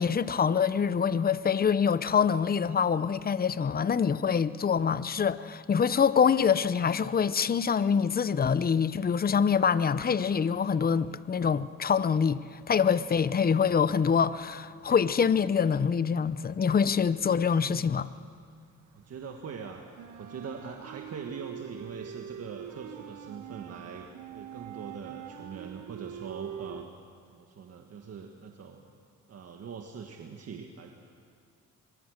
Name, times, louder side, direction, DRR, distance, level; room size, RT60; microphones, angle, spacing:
voice 1, 0.0-18.1, left 6 dB, 30° left, 0.7 m, -25 dB
sound 1, 14.2-15.1 15.4-18.3 18.7-26.9, right 10 dB, 70° right, 1.0 m, -44 dB
voice 2, 18.9-19.8 20.2-24.1 24.3-26.9 27.3-28.8 29.3-30.9, right 6 dB, 55° right, 1.8 m, -42 dB
24.5 x 22.5 x 6.6 m
cardioid pair, 90°, 30 cm